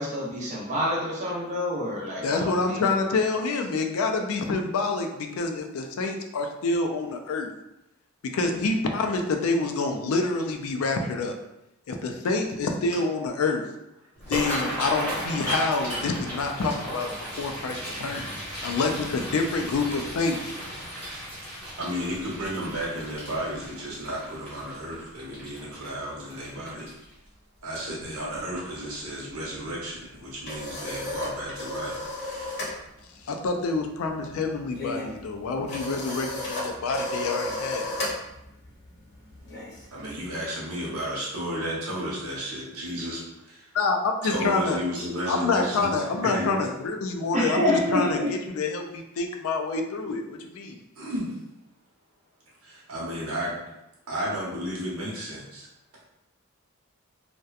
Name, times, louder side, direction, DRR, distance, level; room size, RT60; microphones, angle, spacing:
voice 1, 0.0-3.0 47.3-48.4, left 1 dB, 30° right, -4 dB, 0.6 m, -27 dB
voice 2, 2.2-7.5 8.3-11.4 11.9-13.6 14.3-17.1 17.4-18.3 18.6-20.5 33.3-37.9 43.7-44.8 45.3-48.2 48.6-50.8, left 3 dB, 75° left, 4 dB, 0.4 m, -27 dB
sound 1, 14.1-27.3 27.7-28.0 28.3-28.8 29.2-29.3 30.6-30.7 31.1-31.2 31.7-31.8, equal, 5° left, 0.9 m, -35 dB
voice 3, 21.5-26.9 27.6-32.6 39.9-43.7 44.2-46.7 50.9-51.4 52.6-53.6 54.1-55.7, equal, 80° right, -6 dB, 0.9 m, -33 dB
sound 2, 30.1-32.8 33.0-33.3 33.6-40.3, left 2 dB, 50° left, 0.8 m, -34 dB
2.7 x 2.2 x 2.3 m, 0.88 s
head